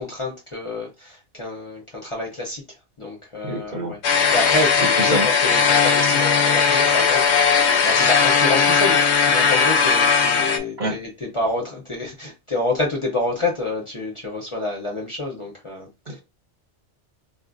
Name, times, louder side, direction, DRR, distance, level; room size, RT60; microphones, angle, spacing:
voice 1, 0.0-2.6 3.0-16.2, left 2 dB, 30° left, 0.7 m, -28 dB
voice 2, 3.4-4.0 5.0-5.3 10.8-11.0 16.1-16.2, equal, 45° right, 1.0 m, -26 dB
sound 1, 4.0-10.6, left 6 dB, 75° left, 1.0 m, -18 dB
3.8 x 2.4 x 2.5 m
omnidirectional pair, 1.2 m